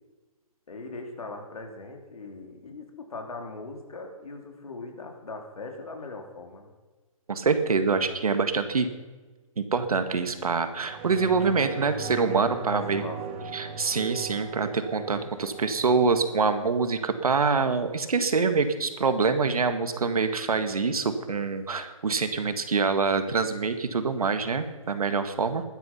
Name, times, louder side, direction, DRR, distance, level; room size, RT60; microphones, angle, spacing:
voice 1, 0.7-6.7 12.7-13.8, left 3 dB, 80° left, 3 dB, 3.7 m, -40 dB
voice 2, 7.3-8.9 9.6-13.0 13.5-25.6, right 4 dB, 85° right, 9 dB, 1.8 m, -25 dB
sound 1, 10.7-19.7 20.1-20.2, right 5 dB, 15° right, 1.0 m, -40 dB
15.5 x 12.0 x 5.6 m, 1.3 s
hypercardioid pair, 175°, 18 cm